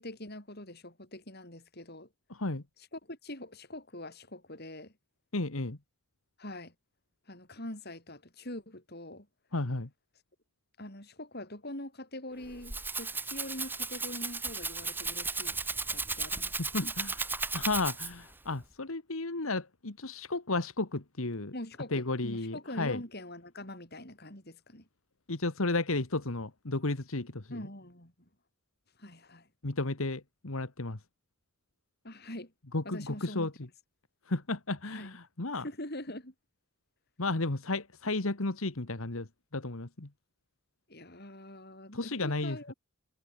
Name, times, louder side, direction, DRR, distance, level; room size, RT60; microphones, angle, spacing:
voice 1, 0.0-2.1 2.9-4.9 6.4-6.7 7.3-9.3 10.8-15.6 15.9-16.9 21.5-24.9 27.5-28.1 29.0-29.5 32.0-32.5 32.9-33.5 34.9-35.2 35.5-36.3 40.9-42.7, left 1 dB, 45° left, 6.9 m, -44 dB
voice 2, 5.3-5.8 9.5-9.9 16.7-17.1 17.5-21.5 21.9-23.0 25.3-27.6 29.6-31.0 32.7-33.5 34.3-35.6 37.2-39.3 39.5-40.1 41.9-42.7, left 2 dB, 70° left, 1.7 m, -33 dB
Rattle (instrument), 12.4-18.3, right 3 dB, 10° right, 1.2 m, -35 dB
head